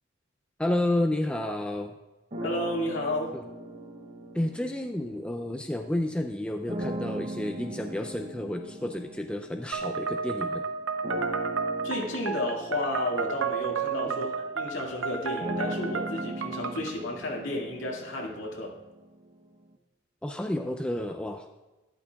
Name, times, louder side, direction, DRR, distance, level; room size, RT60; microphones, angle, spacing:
voice 1, 0.6-1.9 4.3-10.6 20.2-21.5, left 1 dB, 5° left, 4 dB, 0.3 m, -30 dB
sound 1, 2.3-5.9 6.7-10.5 11.0-19.0, right 1 dB, 35° right, 0.7 m, -39 dB
voice 2, 2.4-3.3 11.8-18.7, left 1 dB, 70° left, -2 dB, 2.1 m, -32 dB
sound 2, 9.7-16.9, right 5 dB, 80° right, 0.7 m, -32 dB
12.0 x 11.0 x 2.3 m, 1.1 s
head